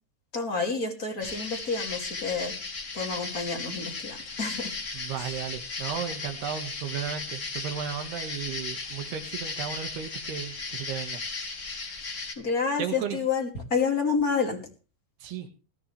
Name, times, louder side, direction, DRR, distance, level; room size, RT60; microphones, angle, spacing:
voice 1, 0.3-2.5 2.9-4.7 12.4-14.6, left 5 dB, 25° left, 2 dB, 2.5 m, -29 dB
sound 1, 1.2-12.3, left 4 dB, 40° left, 1.0 m, -36 dB
voice 2, 4.9-11.2 12.8-13.2 15.2-15.5, right 9 dB, 70° right, 7 dB, 3.7 m, -34 dB
19.5 x 13.5 x 3.5 m, 0.34 s
omnidirectional pair, 5.0 m